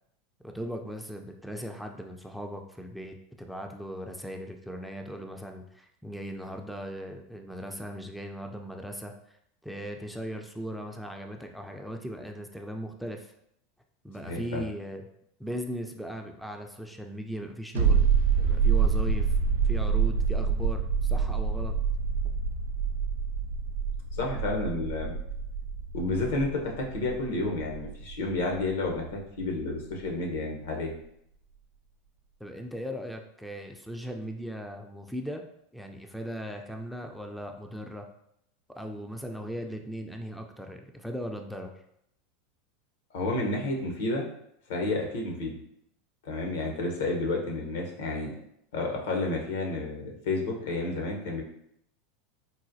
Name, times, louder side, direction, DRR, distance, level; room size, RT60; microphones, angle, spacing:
voice 1, 0.4-9.1 9.6-13.3 14.0-15.0 15.4-18.1 18.4-19.4 19.6-21.7 32.4-35.4 35.7-38.1 38.7-41.7, equal, ahead, 3 dB, 0.3 m, -38 dB
voice 2, 14.2-14.6 24.1-25.1 25.9-31.0 43.1-44.3 44.7-45.5 46.2-48.3 48.7-51.4, left 2 dB, 75° left, 1 dB, 0.8 m, -30 dB
sound 1, 17.7-29.1 29.4-29.5, right 6 dB, 90° right, 0.4 m, -27 dB
4.0 x 2.1 x 2.6 m, 0.74 s
hypercardioid pair, 100°, 0 cm